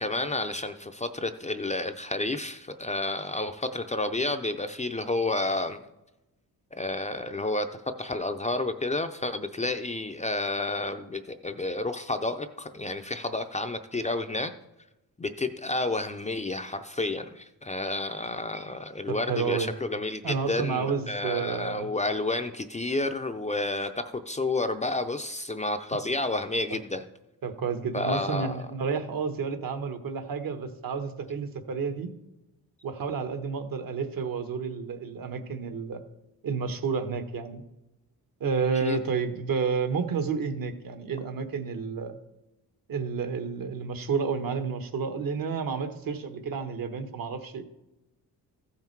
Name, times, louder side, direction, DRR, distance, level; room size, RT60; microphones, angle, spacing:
voice 1, 0.0-5.8 6.7-7.7 8.0-14.5 15.2-27.0 27.9-28.6 38.7-39.0, left 2 dB, 20° left, 7 dB, 0.4 m, -30 dB
voice 2, 19.1-19.7 20.2-21.9 26.7-26.8 27.4-32.1 32.8-36.0 36.4-37.6 38.4-42.1 42.9-47.6, right 5 dB, 65° right, 8 dB, 1.2 m, -30 dB
14.5 x 5.7 x 4.6 m, 0.96 s
wide cardioid pair, 125°, 37 cm